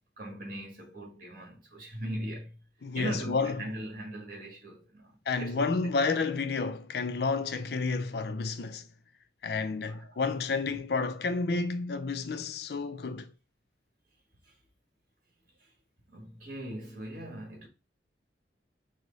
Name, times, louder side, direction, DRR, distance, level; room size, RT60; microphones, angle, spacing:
voice 1, 0.2-2.6 2.9-5.9 9.9-10.2 10.6-10.7 14.4-14.5 15.6-15.7 16.1-17.7, right 1 dB, 50° right, 1.6 m, -40 dB
voice 2, 2.8-3.7 5.3-8.9 9.4-13.3, left 4 dB, 60° left, 0.4 m, -30 dB
6.2 x 2.1 x 3.9 m
head